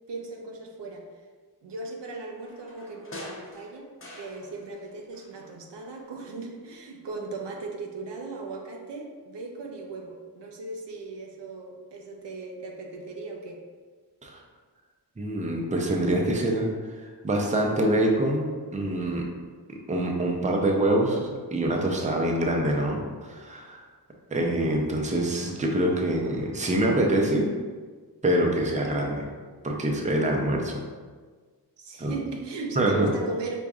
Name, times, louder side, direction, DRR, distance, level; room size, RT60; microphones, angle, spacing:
voice 1, 0.1-1.0 1.6-3.9 4.1-13.6 31.8-33.6, right 3 dB, 80° right, 1 dB, 0.6 m, -37 dB
sound 1, 2.4-4.9 5.1-6.2 6.5-6.6, left 1 dB, 30° left, 0.8 m, -45 dB
voice 2, 15.2-19.3 19.7-23.9 24.3-27.5 28.2-29.3 29.6-30.8 32.0-32.1 32.8-33.1, right 1 dB, 20° right, 0 dB, 0.5 m, -25 dB
4.7 x 2.6 x 2.4 m, 1.5 s
wide cardioid pair, 70°, 41 cm